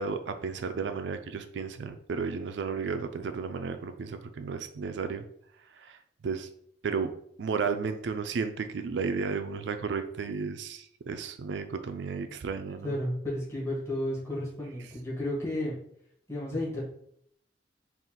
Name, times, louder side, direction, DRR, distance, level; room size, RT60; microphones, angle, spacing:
voice 1, 0.0-5.2 5.8-6.0 6.2-6.5 6.8-7.1 7.4-13.0, right 5 dB, 75° right, 8 dB, 0.4 m, -33 dB
voice 2, 12.8-15.8 16.3-16.8, left 1 dB, 15° left, -6 dB, 1.5 m, -32 dB
4.1 x 2.5 x 3.7 m, 0.69 s
head